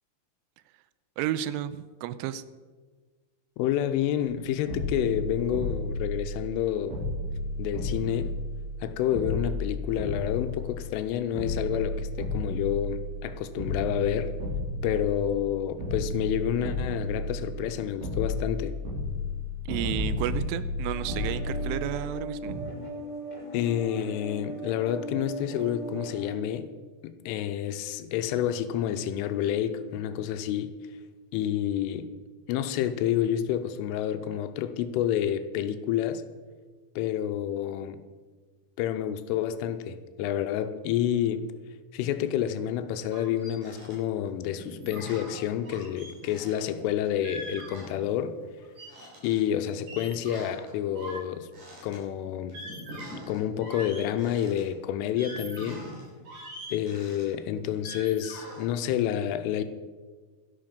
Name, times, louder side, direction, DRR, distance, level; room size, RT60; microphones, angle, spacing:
voice 1, 1.2-2.4 19.7-22.5, right 11 dB, 85° right, 3.0 m, -32 dB
voice 2, 3.6-7.0 7.6-8.3 8.8-14.4 14.8-18.8 23.5-26.7 27.0-30.7 31.3-32.1 32.5-36.2 37.0-38.0 38.8-41.5 41.9-48.4 49.2-51.5 51.8-52.6 53.3-55.9 56.7-59.6, left 10 dB, 85° left, 3.2 m, -29 dB
sound 1, 4.3-4.4 4.7-6.6 6.9-8.8 9.1-11.0 11.3-13.3 13.6-15.5 15.8-17.7 18.0-22.1 22.5-22.6, left 2 dB, 60° right, 6.7 m, -32 dB
sound 2, 20.9-26.3, right 1 dB, 30° left, 0.8 m, -38 dB
sound 3, 43.1-43.9 44.2-44.3 44.5-48.3 48.6-54.6 55.0-58.7, equal, 40° right, 5.5 m, -43 dB
12.5 x 11.5 x 5.3 m
omnidirectional pair, 5.7 m